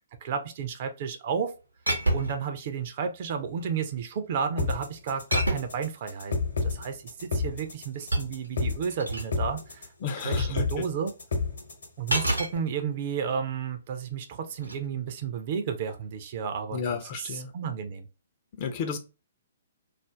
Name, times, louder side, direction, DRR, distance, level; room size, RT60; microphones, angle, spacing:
voice 1, 0.2-1.5 2.1-6.3 6.6-9.9 10.2-11.1 12.0-18.1, right 6 dB, 40° right, 7 dB, 0.4 m, -32 dB
sound 1, 1.9-2.5 3.4-3.9 5.3-5.9 7.6-9.3 12.1-12.6 14.5-14.8, right 1 dB, 80° right, 0.6 m, -29 dB
sound 2, 4.6-12.6, left 4 dB, 60° left, 0.9 m, -30 dB
voice 2, 10.0-10.8 16.7-17.5 18.6-19.0, left 6 dB, 35° left, 6 dB, 0.4 m, -32 dB
2.4 x 2.1 x 3.0 m, 0.30 s
figure-of-eight pair, 125°, 0 cm